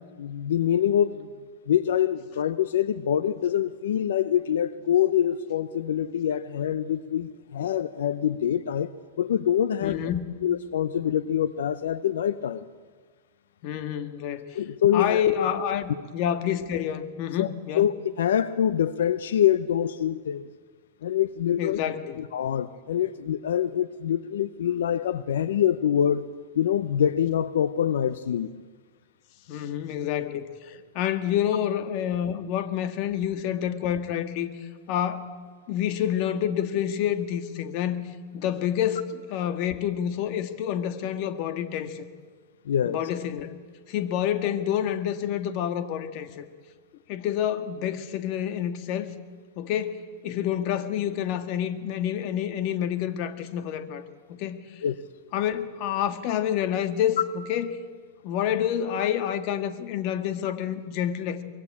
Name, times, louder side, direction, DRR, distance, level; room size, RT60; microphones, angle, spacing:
voice 1, 0.2-1.3 1.7-10.0 10.4-12.6 14.5-15.5 17.4-20.4 21.0-21.8 22.2-26.3 26.5-28.5 42.7-43.0 54.8-55.0, left 10 dB, 85° left, 14 dB, 0.8 m, -25 dB
voice 2, 9.8-10.4 13.6-14.4 14.9-17.9 21.6-22.2 29.5-34.5 34.9-35.3 35.7-38.1 38.3-42.0 42.8-43.5 43.9-46.4 47.1-49.1 49.6-54.0 54.3-54.7 55.3-57.7 58.2-61.4, left 10 dB, 45° left, 9 dB, 1.9 m, -28 dB
24.5 x 22.0 x 8.6 m, 1.5 s
supercardioid pair, 145°, 0 cm